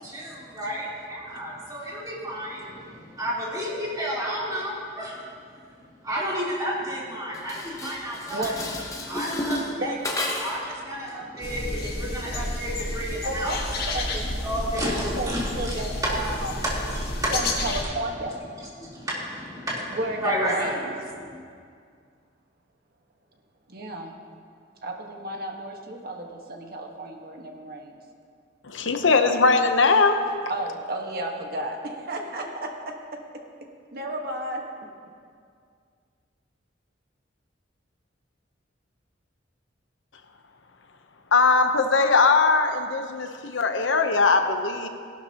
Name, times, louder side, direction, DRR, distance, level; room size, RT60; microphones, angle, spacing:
voice 1, 0.0-5.7 6.0-8.6 9.1-9.9 10.4-13.6 13.8-16.2 16.6-17.3 17.8-17.9 18.8-20.8 21.2-21.4, equal, 20° right, -8 dB, 3.6 m, -31 dB
Dishes pots and pans, 7.3-10.7, left 1 dB, 15° left, 1.1 m, -32 dB
sound 1, 11.4-17.8, left 2 dB, 55° left, 1.5 m, -31 dB
voice 2, 13.2-13.6 13.9-14.2 14.8-14.9 15.2-15.3 15.5-16.6 17.3-18.3 19.9-20.9 23.7-24.1 24.8-28.0 30.5-32.7 33.9-34.6, right 1 dB, 55° right, 1 dB, 1.4 m, -32 dB
voice 3, 28.7-30.2 41.3-44.9, left 4 dB, 80° left, 6 dB, 0.9 m, -20 dB
17.5 x 12.0 x 2.9 m, 2.2 s
head